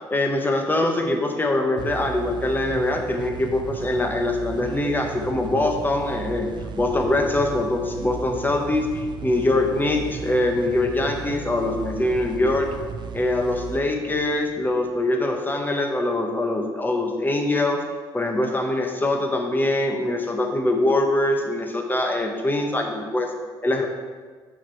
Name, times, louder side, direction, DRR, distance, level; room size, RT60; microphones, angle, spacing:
voice 1, 0.1-6.5 6.8-12.7 13.1-17.8 18.1-23.3 23.6-23.9, left 2 dB, 20° left, 3 dB, 0.9 m, -23 dB
sound 1, 1.8-15.1, right 6 dB, 50° right, 0.4 m, -36 dB
5.9 x 4.5 x 4.4 m, 1.5 s
cardioid pair, 85°, 10 cm